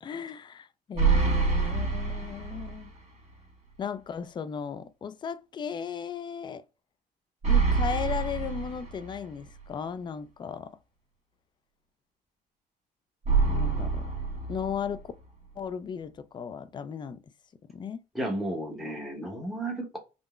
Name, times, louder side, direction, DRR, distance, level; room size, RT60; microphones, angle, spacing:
voice 1, 0.0-2.9 3.8-6.6 7.4-10.8 13.4-14.1 14.5-15.0 15.6-17.2 17.7-18.0, left 7 dB, 25° left, 0.3 m, -36 dB
sound 1, 1.0-3.0 3.3-3.4 7.4-9.4 13.2-15.2, right 4 dB, 40° right, 1.2 m, -26 dB
voice 2, 18.1-20.0, right 1 dB, ahead, 0.9 m, -33 dB
3.7 x 2.0 x 2.3 m
cardioid pair, 110°, 17 cm